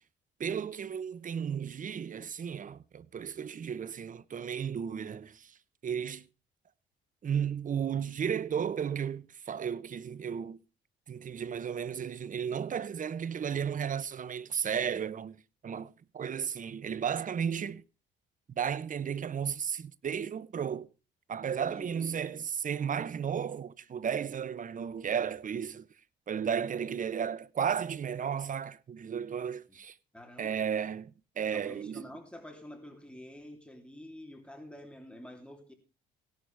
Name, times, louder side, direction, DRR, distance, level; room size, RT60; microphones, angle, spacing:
voice 1, 0.4-5.5 5.8-6.3 7.2-10.6 11.1-15.4 15.6-17.8 18.6-20.9 21.3-25.9 26.3-29.9 30.4-32.0, right 7 dB, 40° right, 0.7 m, -34 dB
voice 2, 21.6-22.4 29.7-29.8 30.1-30.6 31.5-35.7, left 1 dB, 5° left, 3.0 m, -48 dB
17.0 x 11.5 x 3.3 m
cardioid pair, 90°, 20 cm